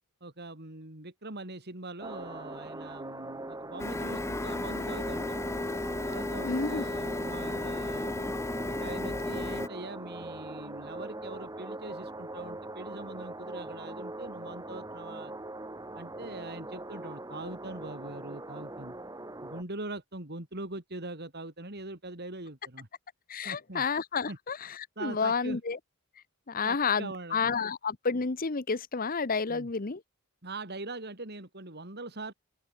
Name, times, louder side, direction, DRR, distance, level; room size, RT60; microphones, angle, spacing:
voice 1, 0.2-5.4 6.0-8.3 8.5-15.3 15.9-18.9 19.4-22.9 23.4-23.8 24.3-24.4 25.0-25.6 26.6-27.5 29.5-29.7 30.4-32.3, right 2 dB, 50° right, 3.5 m, -42 dB
sound 1, 2.0-19.6, right 2 dB, 15° right, 1.6 m, -42 dB
Printer, 3.8-9.7, left 2 dB, 10° left, 0.5 m, -34 dB
voice 2, 6.4-6.8 23.3-25.8 26.5-30.0, left 5 dB, 40° left, 0.9 m, -30 dB
open air
head